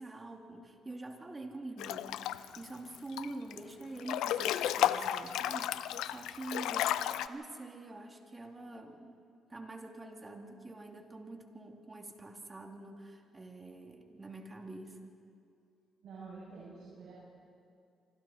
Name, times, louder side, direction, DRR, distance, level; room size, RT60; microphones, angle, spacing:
voice 1, 0.0-9.2 9.5-15.2, right 2 dB, 25° right, 2 dB, 2.7 m, -46 dB
Breathing / Bathtub (filling or washing) / Splash splatter, 1.8-2.6 2.9-3.6 4.0-7.3, left 11 dB, 90° left, 0.6 m, -33 dB
voice 2, 16.0-17.1, right 4 dB, 75° right, -8 dB, 7.1 m, -48 dB
26.0 x 25.5 x 4.3 m, 2.5 s
cardioid pair, 90°, 0 cm